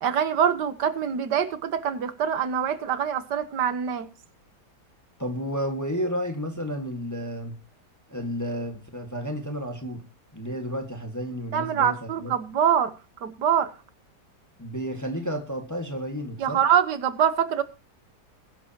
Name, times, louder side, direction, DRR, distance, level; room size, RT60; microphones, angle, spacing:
voice 1, 0.0-4.1 11.5-12.9 13.2-13.7 16.4-17.6, right 8 dB, 75° right, 1.7 m, -24 dB
voice 2, 5.2-7.5 8.1-10.0 10.3-12.3 14.6-16.6, equal, 10° left, 1.7 m, -31 dB
21.5 x 11.0 x 2.9 m
omnidirectional pair, 1.8 m